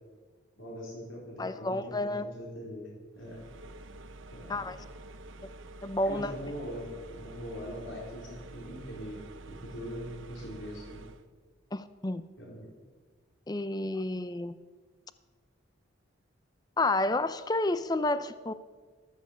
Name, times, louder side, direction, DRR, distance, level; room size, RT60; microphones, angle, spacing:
voice 1, 0.6-3.4 4.3-4.6 6.0-9.2 9.5-11.0 12.4-12.7, equal, 75° left, -3 dB, 4.3 m, -42 dB
voice 2, 1.4-2.3 4.5-4.8 5.8-6.3 11.7-12.2 13.5-14.6 16.8-18.5, left 2 dB, 20° left, 13 dB, 0.5 m, -30 dB
sound 1, 3.2-11.3, right 1 dB, 75° right, 1.0 m, -48 dB
14.0 x 14.0 x 7.4 m, 1.5 s
head